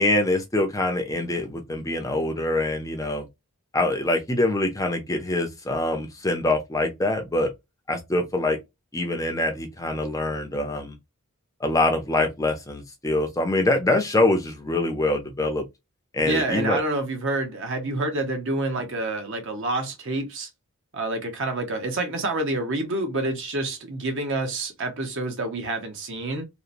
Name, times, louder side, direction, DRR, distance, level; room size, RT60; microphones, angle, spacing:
voice 1, 0.0-3.2 3.7-7.5 7.9-8.6 8.9-11.0 11.6-15.6 16.1-16.8, left 2 dB, 15° left, 0.4 m, -24 dB
voice 2, 16.2-20.5 20.9-26.4, right 2 dB, 55° right, 0.7 m, -28 dB
2.8 x 2.0 x 2.4 m
head